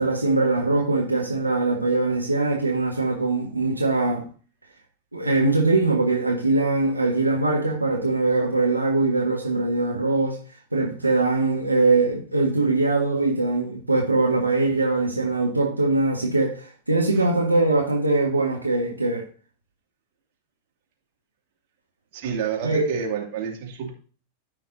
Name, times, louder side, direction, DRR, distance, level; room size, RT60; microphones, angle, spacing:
voice 1, 0.0-4.3 5.1-10.4 10.7-19.2 22.6-22.8, right 3 dB, 85° right, 1.5 m, -22 dB
voice 2, 22.1-23.9, right 7 dB, 50° right, 2.4 m, -29 dB
14.0 x 5.7 x 2.7 m
figure-of-eight pair, 90°, 0 cm